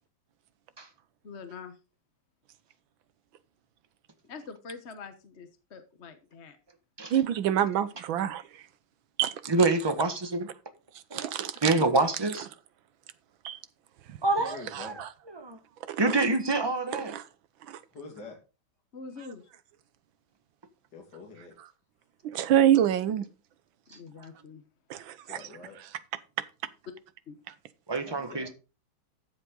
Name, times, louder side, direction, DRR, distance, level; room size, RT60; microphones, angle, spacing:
voice 1, 1.2-1.8 4.3-6.6 11.8-11.9 18.9-19.5 22.3-22.4 23.9-24.6 27.3-27.4, left 4 dB, 40° left, 1.2 m, -44 dB
voice 2, 7.1-8.4 9.2-9.3 11.1-11.7 13.4-13.6 14.7-15.1 15.9-16.1 17.1-17.2 17.7-17.8 22.2-23.3 24.9-25.4, right 10 dB, 80° right, 1.7 m, -26 dB
voice 3, 9.5-10.5 11.1-12.5 14.2-14.9 15.4-15.6 16.0-17.1 23.9-24.0 27.9-28.5, right 3 dB, 15° right, 1.2 m, -27 dB
voice 4, 14.4-15.0 17.9-18.4 20.9-21.6 25.2-25.8 28.0-28.5, left 4 dB, 55° left, 3.0 m, -45 dB
13.0 x 7.6 x 3.8 m
omnidirectional pair, 2.2 m